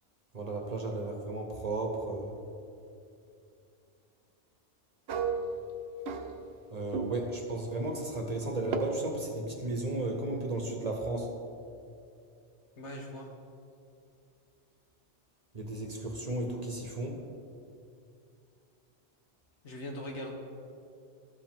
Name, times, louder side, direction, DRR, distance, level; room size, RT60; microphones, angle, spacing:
voice 1, 0.3-2.3 6.7-11.3 15.5-17.2, right 2 dB, 40° right, 2 dB, 0.9 m, -34 dB
sound 1, 5.1-6.7 6.9-7.4 8.7-8.8, right 5 dB, 70° right, 0.9 m, -34 dB
voice 2, 12.8-13.3 19.6-20.3, left 1 dB, 80° left, 1 dB, 1.4 m, -40 dB
13.0 x 4.9 x 3.7 m, 2.5 s
omnidirectional pair, 1.2 m